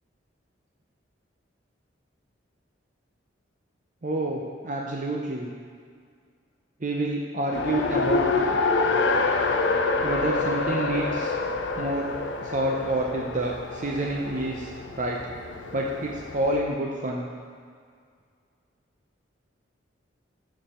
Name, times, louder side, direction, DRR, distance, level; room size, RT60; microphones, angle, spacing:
voice 1, 4.0-5.5 6.8-8.5 10.0-11.3 11.8-12.1 12.4-15.2 15.7-17.3, right 1 dB, 40° right, -1 dB, 0.6 m, -28 dB
Race car auto racing, 7.5-16.6, left 3 dB, 70° left, 0.6 m, -27 dB
7.2 x 5.3 x 6.7 m, 2.1 s
head